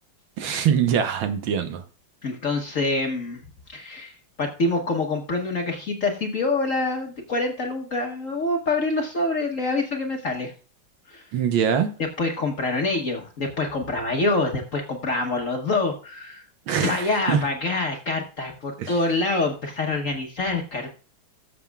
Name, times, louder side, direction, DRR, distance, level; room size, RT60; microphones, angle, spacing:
voice 1, 0.4-1.8 11.3-11.9 16.7-17.4 18.8-18.9, right 8 dB, 70° right, 8 dB, 1.7 m, -23 dB
voice 2, 2.2-3.4 3.7-10.5 11.1-11.2 12.0-16.5 16.8-21.0, left 2 dB, 45° left, 2 dB, 1.2 m, -26 dB
19.0 x 7.2 x 2.3 m, 0.37 s
omnidirectional pair, 2.4 m